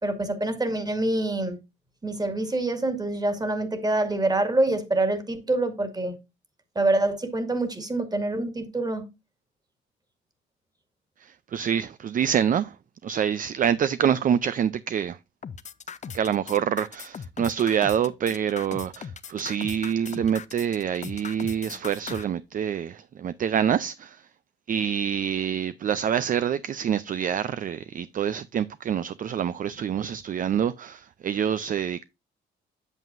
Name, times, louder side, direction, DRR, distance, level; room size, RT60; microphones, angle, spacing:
voice 1, 0.0-1.6 2.0-6.2 6.8-9.1, right 2 dB, 20° right, 1.9 m, -26 dB
voice 2, 11.2-12.8 13.0-15.2 16.1-24.3 24.7-32.1, right 8 dB, 45° right, 0.5 m, -26 dB
sound 1, 15.4-22.2, left 7 dB, 35° left, 0.6 m, -38 dB
8.1 x 7.3 x 2.5 m
cardioid pair, 90°, 20 cm